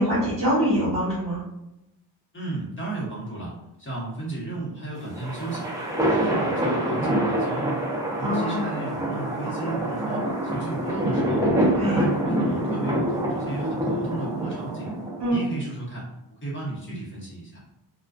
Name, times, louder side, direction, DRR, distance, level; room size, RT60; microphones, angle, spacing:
voice 1, 0.0-1.4 8.2-8.6 11.7-12.1 15.2-15.3, equal, 65° right, -10 dB, 1.1 m, -24 dB
voice 2, 2.3-3.5 3.8-5.7 6.2-7.8 8.2-11.4 11.8-14.9 15.3-16.1 16.4-17.6, right 2 dB, 30° left, -6 dB, 1.0 m, -34 dB
sound 1, 5.0-15.4, right 1 dB, 10° right, 0.5 m, -26 dB
2.4 x 2.3 x 2.3 m, 0.88 s
wide cardioid pair, 145°, 41 cm